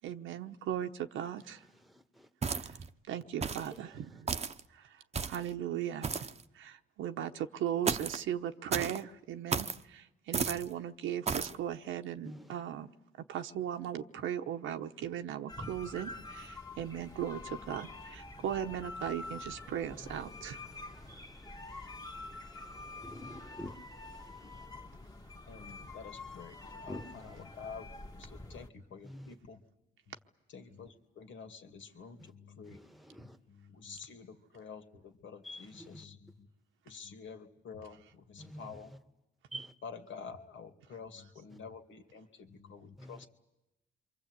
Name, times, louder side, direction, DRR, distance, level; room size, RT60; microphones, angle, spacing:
voice 1, 0.0-1.6 2.6-2.8 3.1-4.3 4.7-6.3 6.5-12.9 13.3-20.7, right 10 dB, 85° right, 1.1 m, -38 dB
voice 2, 1.9-2.3 3.6-3.8 12.2-12.5 20.0-20.1 20.7-21.4 22.5-24.7 26.9-27.3 29.0-29.3 32.2-32.3 32.6-33.4 35.4-36.0 38.4-39.0 39.5-39.7 43.0-43.3, equal, ahead, 1.4 m, -48 dB
sound 1, 2.4-2.9 3.4-3.7 4.3-4.6 5.1-5.5 6.0-6.4 7.9-8.2 8.7-9.0 9.5-9.8 10.3-10.7 11.3-11.6, right 5 dB, 35° right, 0.9 m, -33 dB
sound 2, 15.5-28.7, left 2 dB, 20° left, 1.8 m, -47 dB
voice 3, 25.5-29.6 30.5-32.8 33.2-36.5 36.9-38.9 39.8-43.3, left 5 dB, 70° left, 2.6 m, -49 dB
28.0 x 24.0 x 8.2 m
cardioid pair, 90°, 20 cm